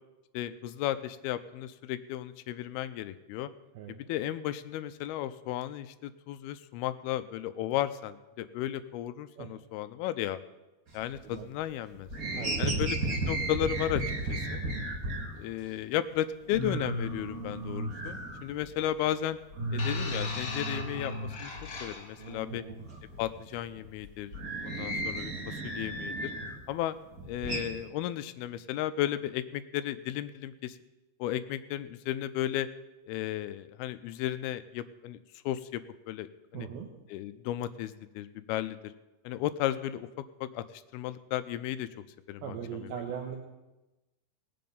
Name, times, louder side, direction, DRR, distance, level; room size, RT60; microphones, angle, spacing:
voice 1, 0.3-3.5 3.9-10.4 10.9-12.1 12.6-14.0 14.3-14.6 15.4-19.4 19.7-21.1 21.4-21.5 21.8-22.6 23.2-24.3 24.6-26.3 26.7-27.0 27.2-30.8 31.2-32.7 33.1-35.2 35.5-35.8 36.1-36.7 37.1-38.9 39.3-40.1 40.4-40.6 40.9-41.9 42.3-42.6 42.8-42.9, left 12 dB, 85° left, 12 dB, 2.5 m, -34 dB
sound 1, 10.9-11.6 11.9-15.3 15.8-15.9 16.2-16.3 16.5-19.0 19.2-21.8 22.2-26.6 27.0-27.6, right 1 dB, 40° right, 1.3 m, -34 dB
voice 2, 12.3-12.9 14.5-14.8 22.5-22.6 36.5-36.9 42.4-43.4, right 8 dB, 80° right, 1 dB, 2.8 m, -40 dB
sound 2, 19.8-22.3 23.3-23.4, left 4 dB, 50° left, 1.8 m, -39 dB
19.0 x 7.6 x 5.3 m, 1.0 s
omnidirectional pair, 4.5 m